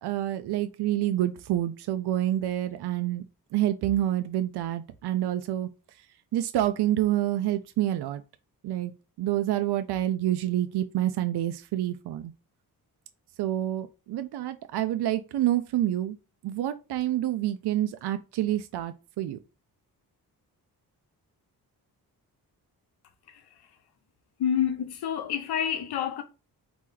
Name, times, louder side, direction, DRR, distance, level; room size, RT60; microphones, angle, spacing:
voice 1, 0.0-3.2 3.5-5.7 6.3-8.2 8.6-12.3 13.4-16.2 16.4-19.4, right 13 dB, 90° right, 0.5 m, -28 dB
voice 2, 24.4-26.2, left 9 dB, 90° left, 0.8 m, -28 dB
4.2 x 3.0 x 3.8 m
wide cardioid pair, 115°, 38 cm